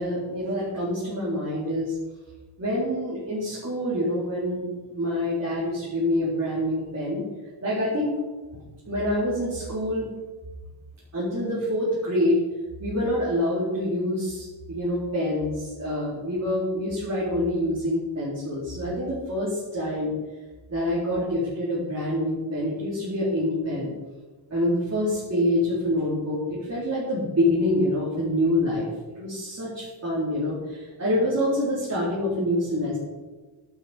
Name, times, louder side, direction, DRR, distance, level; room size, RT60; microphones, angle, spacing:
voice 1, 0.0-2.0 2.6-7.2 7.6-8.2 8.9-10.1 11.1-12.4 12.8-20.1 20.7-23.9 24.5-33.0, left 1 dB, 30° right, -8 dB, 4.1 m, -26 dB
11.5 x 11.0 x 5.2 m, 1.2 s
wide cardioid pair, 135°, 50 cm